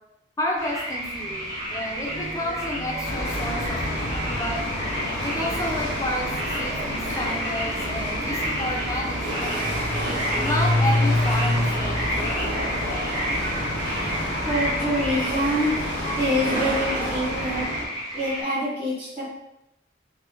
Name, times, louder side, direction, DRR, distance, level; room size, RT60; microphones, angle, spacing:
voice 1, 0.4-4.6 5.2-6.3 6.6-9.5 10.4-12.5 15.3-15.4 15.7-16.1 17.0-17.4, left 1 dB, 20° left, -1 dB, 0.5 m, -31 dB
sound 1, 0.6-18.4, equal, 20° right, 0.8 m, -32 dB
Chatter / Hiss / Rattle, 0.8-17.7, right 1 dB, 90° right, 0.6 m, -34 dB
sound 2, 3.0-17.9, left 1 dB, 80° left, 0.7 m, -28 dB
voice 2, 14.2-15.7 16.2-17.7 18.1-19.3, equal, 35° right, -14 dB, 1.5 m, -26 dB
3.4 x 2.1 x 3.0 m, 0.89 s
head